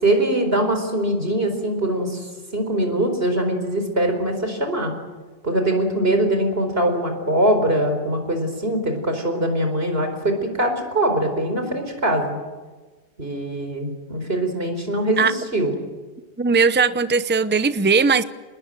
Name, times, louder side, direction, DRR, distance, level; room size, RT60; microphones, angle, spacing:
voice 1, 0.0-4.9 5.4-12.4 13.2-15.7, right 1 dB, 60° right, 6 dB, 4.7 m, -22 dB
voice 2, 16.4-18.2, right 5 dB, 10° right, 13 dB, 0.7 m, -18 dB
26.5 x 20.5 x 9.1 m, 1.3 s
omnidirectional pair, 1.1 m